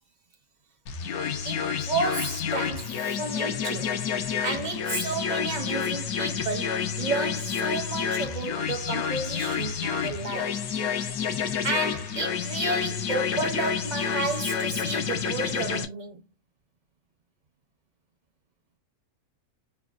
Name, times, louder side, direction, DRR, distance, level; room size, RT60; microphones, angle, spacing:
sound 1, 0.9-15.9, left 7 dB, 75° left, 1.1 m, -29 dB
voice 1, 1.4-4.0 4.4-10.6 11.6-16.2, right 3 dB, 50° right, 0.5 m, -32 dB
5.7 x 2.0 x 2.4 m
omnidirectional pair, 1.6 m